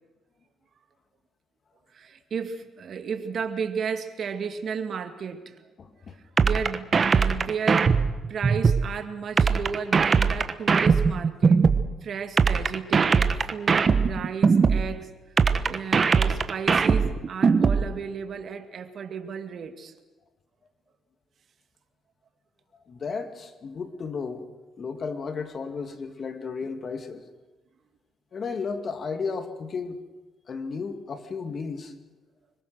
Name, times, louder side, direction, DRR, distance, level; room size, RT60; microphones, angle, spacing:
voice 1, 1.9-5.6 6.4-8.0 8.3-11.6 12.0-15.1 15.6-19.9, right 6 dB, 55° right, 2.3 m, -33 dB
voice 2, 5.8-6.2 22.9-24.5 24.8-27.3 28.3-30.0 30.5-31.9, left 5 dB, 50° left, 2.4 m, -33 dB
sound 1, 6.4-8.9 9.4-11.9 12.4-14.9 15.4-17.9, right 5 dB, 40° right, 1.3 m, -20 dB
25.5 x 22.0 x 6.5 m
cardioid pair, 90°, 0 cm